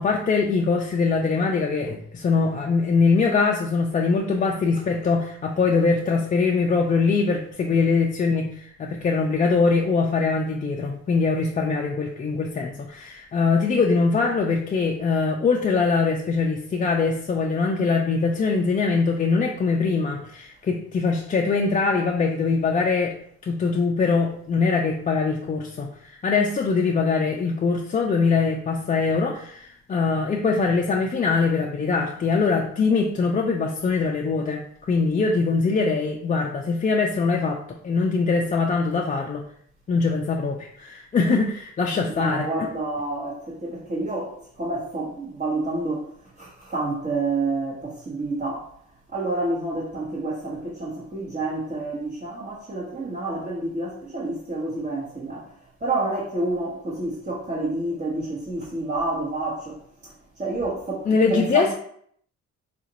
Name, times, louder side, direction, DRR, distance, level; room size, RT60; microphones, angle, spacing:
voice 1, 0.0-23.2 23.4-39.4 39.9-42.7 61.1-61.7, left 4 dB, 30° left, 0 dB, 0.4 m, -22 dB
voice 2, 42.1-46.1 46.4-48.6 49.1-55.5 55.8-60.1 60.4-61.7, right 2 dB, 30° right, -7 dB, 1.0 m, -29 dB
3.9 x 2.4 x 2.8 m, 0.63 s
cardioid pair, 90°, 30 cm